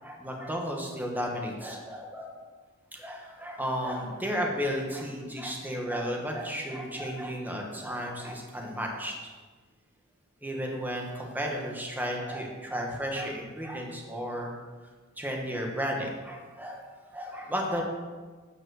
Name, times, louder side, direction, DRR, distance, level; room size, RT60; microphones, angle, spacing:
voice 1, 0.0-2.3 2.9-9.1 10.4-14.5 15.2-16.8 17.1-17.8, equal, 10° right, 0 dB, 1.4 m, -33 dB
8.9 x 5.2 x 6.4 m, 1.4 s
head